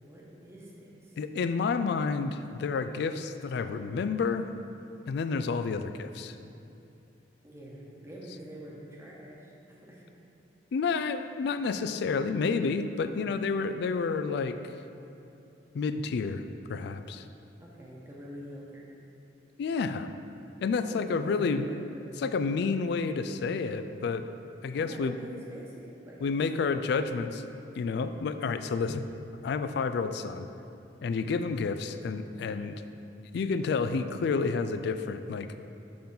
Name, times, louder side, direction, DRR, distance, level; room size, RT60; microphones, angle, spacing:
voice 1, 0.0-1.2 7.4-10.0 17.6-18.9 20.9-22.1 24.7-26.4, right 1 dB, 15° right, -4 dB, 1.0 m, -46 dB
voice 2, 1.2-4.5 5.1-6.4 10.7-14.6 15.7-16.4 16.7-17.3 19.6-20.1 20.6-21.6 22.2-24.2 24.6-25.2 26.2-27.5 27.8-29.0 29.4-30.5 31.0-32.7 33.3-35.6, left 4 dB, 60° left, 10 dB, 0.3 m, -30 dB
6.7 x 3.9 x 5.4 m, 2.8 s
head